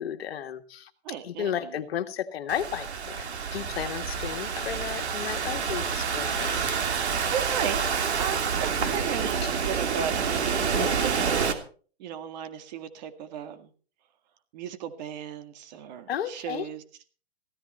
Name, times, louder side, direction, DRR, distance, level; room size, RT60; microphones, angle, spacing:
voice 1, 0.0-0.9 1.2-6.8 8.8-9.0 9.4-9.5 10.7-10.9 16.1-16.7, left 9 dB, 65° left, 7 dB, 1.9 m, -34 dB
voice 2, 1.0-1.8 6.9-7.8 8.2-10.1 10.5-11.7 12.0-13.7 14.5-16.8, right 8 dB, 40° right, 9 dB, 1.9 m, -35 dB
Thunderstorm / Rain, 2.5-11.5, right 6 dB, 80° right, 2.9 m, -28 dB
16.0 x 14.0 x 4.4 m, 0.41 s
hypercardioid pair, 150°, 33 cm